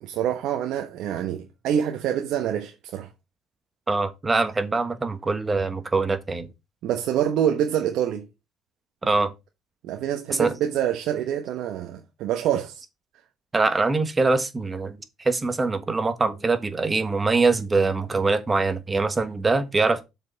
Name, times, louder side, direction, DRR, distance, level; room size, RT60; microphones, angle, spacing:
voice 1, 0.0-3.1 6.8-8.3 9.8-12.8, right 10 dB, 70° right, 1.1 m, -26 dB
voice 2, 3.9-6.5 9.0-9.3 10.3-10.5 13.5-20.0, right 3 dB, 20° right, 1.3 m, -23 dB
6.9 x 5.4 x 4.1 m
cardioid pair, 110°, 0 cm